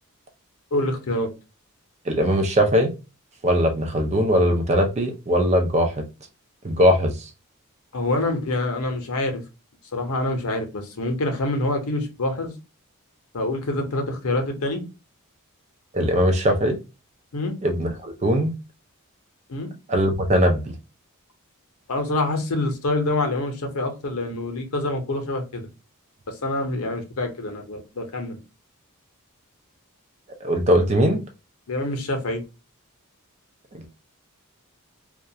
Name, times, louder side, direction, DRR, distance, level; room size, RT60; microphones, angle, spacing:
voice 1, 0.7-1.3 7.9-9.4 9.9-12.5 13.3-14.8 17.3-17.5 19.5-19.7 21.9-25.7 26.3-28.4 31.7-32.4, left 2 dB, 75° left, 0.7 m, -26 dB
voice 2, 2.1-2.9 3.4-6.1 6.6-7.1 15.9-16.8 17.6-18.5 19.9-20.7 30.4-31.2 33.7-33.9, equal, 30° right, 0.5 m, -20 dB
2.3 x 2.2 x 2.6 m
head